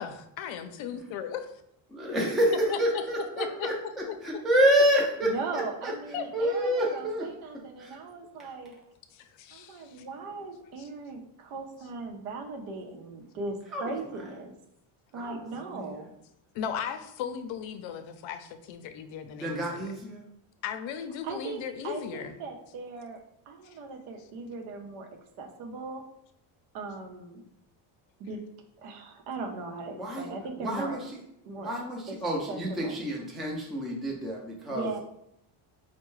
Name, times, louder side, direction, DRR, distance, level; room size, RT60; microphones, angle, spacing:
voice 1, 0.0-1.5 2.5-4.2 6.1-6.2 9.1-10.0 10.8-10.9 16.5-19.9 20.6-22.4 23.6-23.8, left 8 dB, 70° left, 8 dB, 0.5 m, -37 dB
voice 2, 1.9-3.7 4.2-5.9 6.3-7.3 13.7-13.9 15.1-15.4 19.4-20.2 30.0-30.3 30.6-31.0 31.6-34.9, equal, ahead, -2 dB, 0.4 m, -27 dB
voice 3, 5.2-8.7 9.5-14.5 15.1-16.1 21.2-23.2 23.5-25.1 25.4-26.0 26.7-27.4 28.2-28.4 28.8-31.0 31.4-31.7 32.1-32.2 32.5-33.0 34.7-35.0, right 3 dB, 85° right, 4 dB, 0.7 m, -38 dB
4.4 x 2.2 x 3.0 m, 0.79 s
cardioid pair, 135°, 48 cm